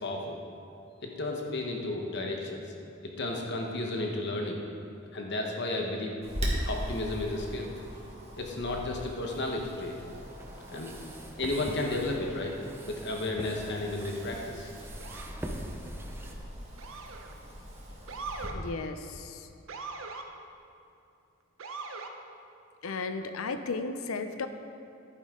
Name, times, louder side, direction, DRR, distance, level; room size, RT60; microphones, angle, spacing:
voice 1, 0.0-0.4 1.0-2.6 3.2-4.6 5.1-6.2 6.6-8.1 8.4-9.9 10.7-10.9 11.4-12.6 12.8-14.7, left 2 dB, 60° left, 1 dB, 1.0 m, -33 dB
Wind, 6.2-18.5, equal, 30° right, 1.7 m, -40 dB
sound 1, 10.1-16.3, right 1 dB, 10° right, 0.7 m, -44 dB
Motor vehicle (road) / Siren, 15.0-15.4 16.8-17.3 18.1-18.6 19.7-20.3 21.6-22.1, right 4 dB, 70° right, 0.8 m, -40 dB
voice 2, 18.5-19.5 22.8-24.5, left 4 dB, 90° left, 8 dB, 0.6 m, -35 dB
11.0 x 9.5 x 3.7 m, 2.6 s
head